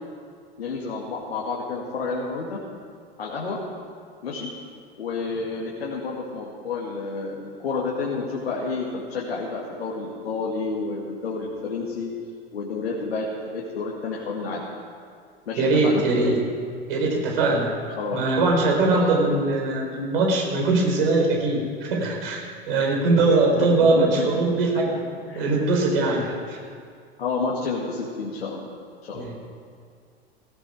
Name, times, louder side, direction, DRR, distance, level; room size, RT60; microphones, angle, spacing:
voice 1, 0.6-2.6 3.2-3.6 4.2-4.5 5.0-12.1 12.5-14.7 15.5-16.0 17.9-18.2 18.9-19.1 23.5-24.3 25.3-25.5 27.2-28.7 29.0-29.3, left 4 dB, 75° left, -4 dB, 2.4 m, -30 dB
voice 2, 15.6-16.3 16.9-17.7 18.1-22.4 22.7-24.9 25.4-26.6 29.1-29.3, right 3 dB, 65° right, 0 dB, 4.4 m, -21 dB
17.5 x 16.0 x 5.0 m, 2.2 s
figure-of-eight pair, 90°, 31 cm